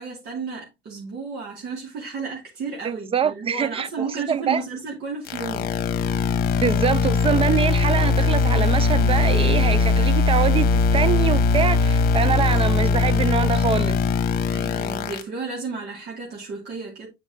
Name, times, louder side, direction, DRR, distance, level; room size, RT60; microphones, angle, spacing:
voice 1, 0.0-5.7 14.5-17.1, right 4 dB, 70° right, 2.3 m, -33 dB
voice 2, 2.8-4.6 6.6-14.0, right 7 dB, 35° right, 0.4 m, -24 dB
sound 1, 5.3-15.2, left 4 dB, 65° left, 1.0 m, -20 dB
8.0 x 5.0 x 2.8 m
cardioid pair, 110°, 17 cm